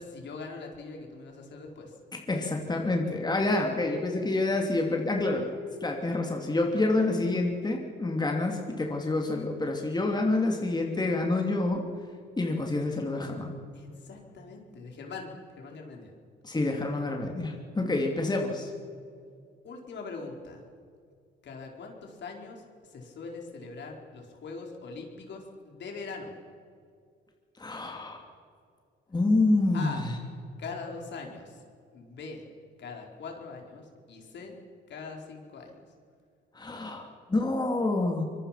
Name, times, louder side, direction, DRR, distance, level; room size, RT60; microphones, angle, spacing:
voice 1, 0.0-2.0 13.7-16.1 19.6-20.6 21.4-26.3 29.7-30.0 30.6-31.6 31.9-32.4 32.8-33.8 34.1-34.5 34.9-35.7, left 4 dB, 65° left, 1 dB, 4.5 m, -42 dB
voice 2, 2.3-5.5 5.8-11.8 12.4-13.5 16.4-18.7 27.6-28.2 29.1-30.1 36.5-37.0 37.3-38.2, left 2 dB, 20° left, 2 dB, 3.0 m, -27 dB
24.5 x 23.0 x 5.9 m, 2.3 s
cardioid pair, 90°, 20 cm